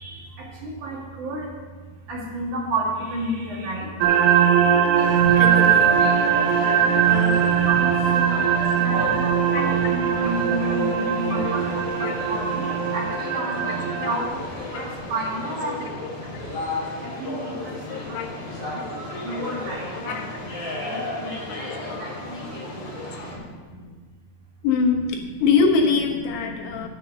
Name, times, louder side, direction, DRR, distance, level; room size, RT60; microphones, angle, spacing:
voice 1, 0.0-4.8 5.6-6.3 7.3-16.7 17.0-18.8 19.1-23.9 25.3-25.4 26.4-26.9, right 1 dB, 55° right, -4 dB, 2.3 m, -33 dB
sound 1, 4.0-14.3, right 8 dB, 85° right, 3.7 m, -20 dB
sound 2, 4.9-23.3, left 2 dB, 35° left, 3.0 m, -33 dB
voice 2, 5.4-5.9 7.1-7.5 8.3-8.4 9.5-9.7 10.2-11.0 11.5-11.6 12.0-12.1 14.0-14.3 14.7-14.9 16.0-16.4 17.9-18.3 19.3-19.4 19.9-20.3 21.6-22.0 23.0-23.2 24.6-26.9, left 5 dB, 75° left, 1 dB, 3.6 m, -25 dB
9.1 x 8.2 x 6.7 m, 1.4 s
omnidirectional pair, 6.0 m